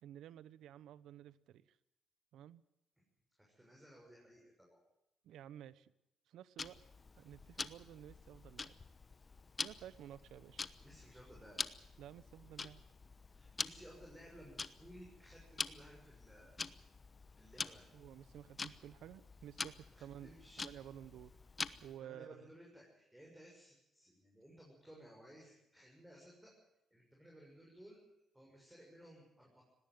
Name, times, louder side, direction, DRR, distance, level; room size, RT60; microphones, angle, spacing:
voice 1, 0.0-1.8 2.3-2.6 5.2-5.9 6.3-6.8 7.2-8.8 9.6-10.6 12.0-12.8 17.9-21.3 21.8-22.5, right 11 dB, 80° right, 18 dB, 0.9 m, -53 dB
voice 2, 3.4-4.8 10.8-11.6 13.3-16.6 17.3-17.8 19.9-20.7 22.0-26.5 26.9-28.0 28.3-29.6, equal, 5° right, -2 dB, 6.8 m, -58 dB
Tick-tock, 6.6-22.0, left 4 dB, 30° left, 1.0 m, -47 dB
19.0 x 18.0 x 9.2 m, 0.88 s
cardioid pair, 90°, 0 cm